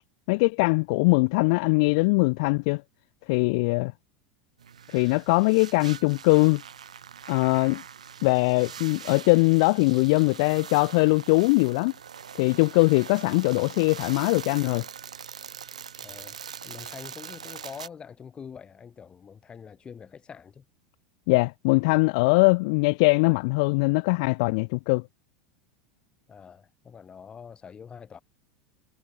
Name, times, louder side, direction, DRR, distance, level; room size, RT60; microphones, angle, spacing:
voice 1, 0.3-2.8 3.3-3.9 4.9-6.6 7.3-7.8 8.2-11.9 12.4-14.8 21.3-25.0, left 28 dB, 60° left, 0.4 m, -21 dB
sound 1, 4.6-17.9, right 8 dB, 85° right, 5.5 m, -42 dB
voice 2, 16.0-16.4 16.6-20.6 26.3-28.2, left 7 dB, 25° left, 5.0 m, -45 dB
hypercardioid pair, 90°, 4 cm